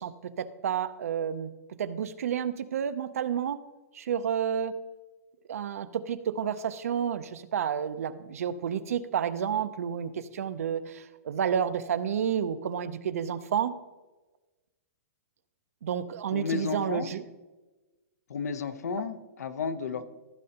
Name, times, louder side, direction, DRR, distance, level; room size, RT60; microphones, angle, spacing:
voice 1, 0.0-1.5 1.8-3.6 3.9-4.8 5.5-13.7 15.8-17.2, right 8 dB, 65° right, 12 dB, 0.6 m, -30 dB
voice 2, 16.3-17.1 18.3-20.1, left 6 dB, 80° left, 12 dB, 0.8 m, -32 dB
15.0 x 6.5 x 2.9 m, 1.2 s
hypercardioid pair, 175°, 9 cm